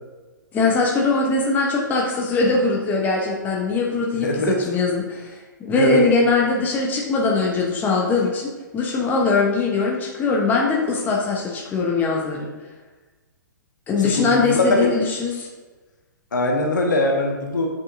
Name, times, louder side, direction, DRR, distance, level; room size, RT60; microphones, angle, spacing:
voice 1, 0.5-5.3 5.6-12.5 13.9-15.5, left 3 dB, 15° left, -1 dB, 0.9 m, -21 dB
voice 2, 4.2-4.6 5.8-6.0 14.0-14.9 16.3-17.7, left 1 dB, 65° left, 0 dB, 1.2 m, -21 dB
7.3 x 5.6 x 2.6 m, 1.3 s
figure-of-eight pair, 115°, 11 cm